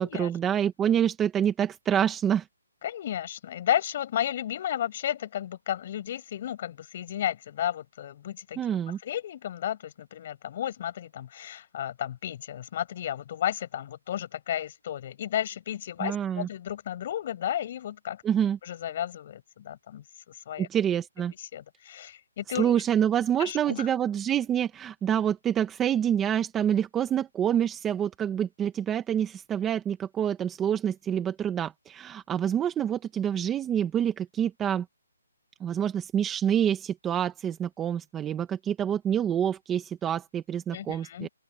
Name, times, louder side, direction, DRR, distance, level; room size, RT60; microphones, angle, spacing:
voice 1, 0.0-2.5 8.6-9.0 16.0-16.5 18.2-18.6 20.6-21.3 22.5-34.8 35.6-41.3, right 9 dB, 10° right, 1.0 m, -27 dB
voice 2, 2.8-8.6 9.0-18.2 18.6-20.7 21.4-22.7 23.4-23.9 40.7-41.3, left 11 dB, 30° left, 7.9 m, -33 dB
open air
hypercardioid pair, 170°, 0 cm